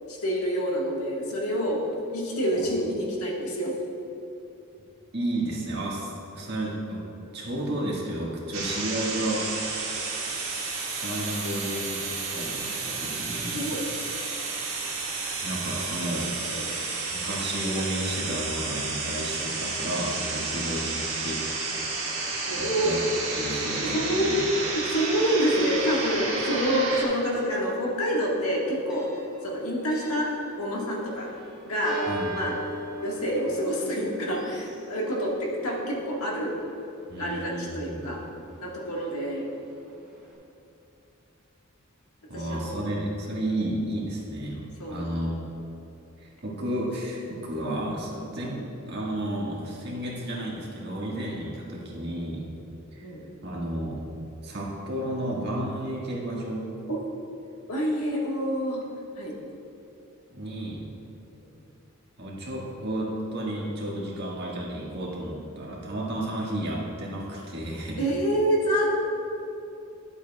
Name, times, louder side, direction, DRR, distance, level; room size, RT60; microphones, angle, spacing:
voice 1, 0.1-1.8 2.1-3.8 13.5-13.8 16.5-16.7 22.5-23.3 23.8-29.1 29.4-30.3 30.6-31.3 31.6-32.0 32.3-32.6 33.0-36.6 37.2-38.2 38.6-39.4 42.3-43.0 44.8-45.2 53.0-53.3 56.9-57.0 57.7-58.8 59.2-59.4 61.4-61.5 68.0-69.0, equal, 90° left, -3 dB, 1.6 m, -27 dB
voice 2, 5.1-9.4 10.1-10.2 11.0-12.1 12.3-13.6 15.4-16.3 17.1-21.4 22.0-22.2 22.5-23.0 23.3-24.5 32.1-32.3 37.1-38.0 42.3-44.6 44.9-45.5 46.2-52.5 52.9-53.1 53.4-54.0 54.4-56.7 60.3-60.9 62.2-68.0, right 1 dB, 50° right, -4 dB, 1.6 m, -32 dB
sound 1, 8.5-27.0, right 3 dB, 70° right, 1.5 m, -31 dB
Church bell, 25.3-40.4, right 1 dB, 5° right, 1.8 m, -42 dB
11.5 x 7.9 x 2.3 m, 2.8 s
head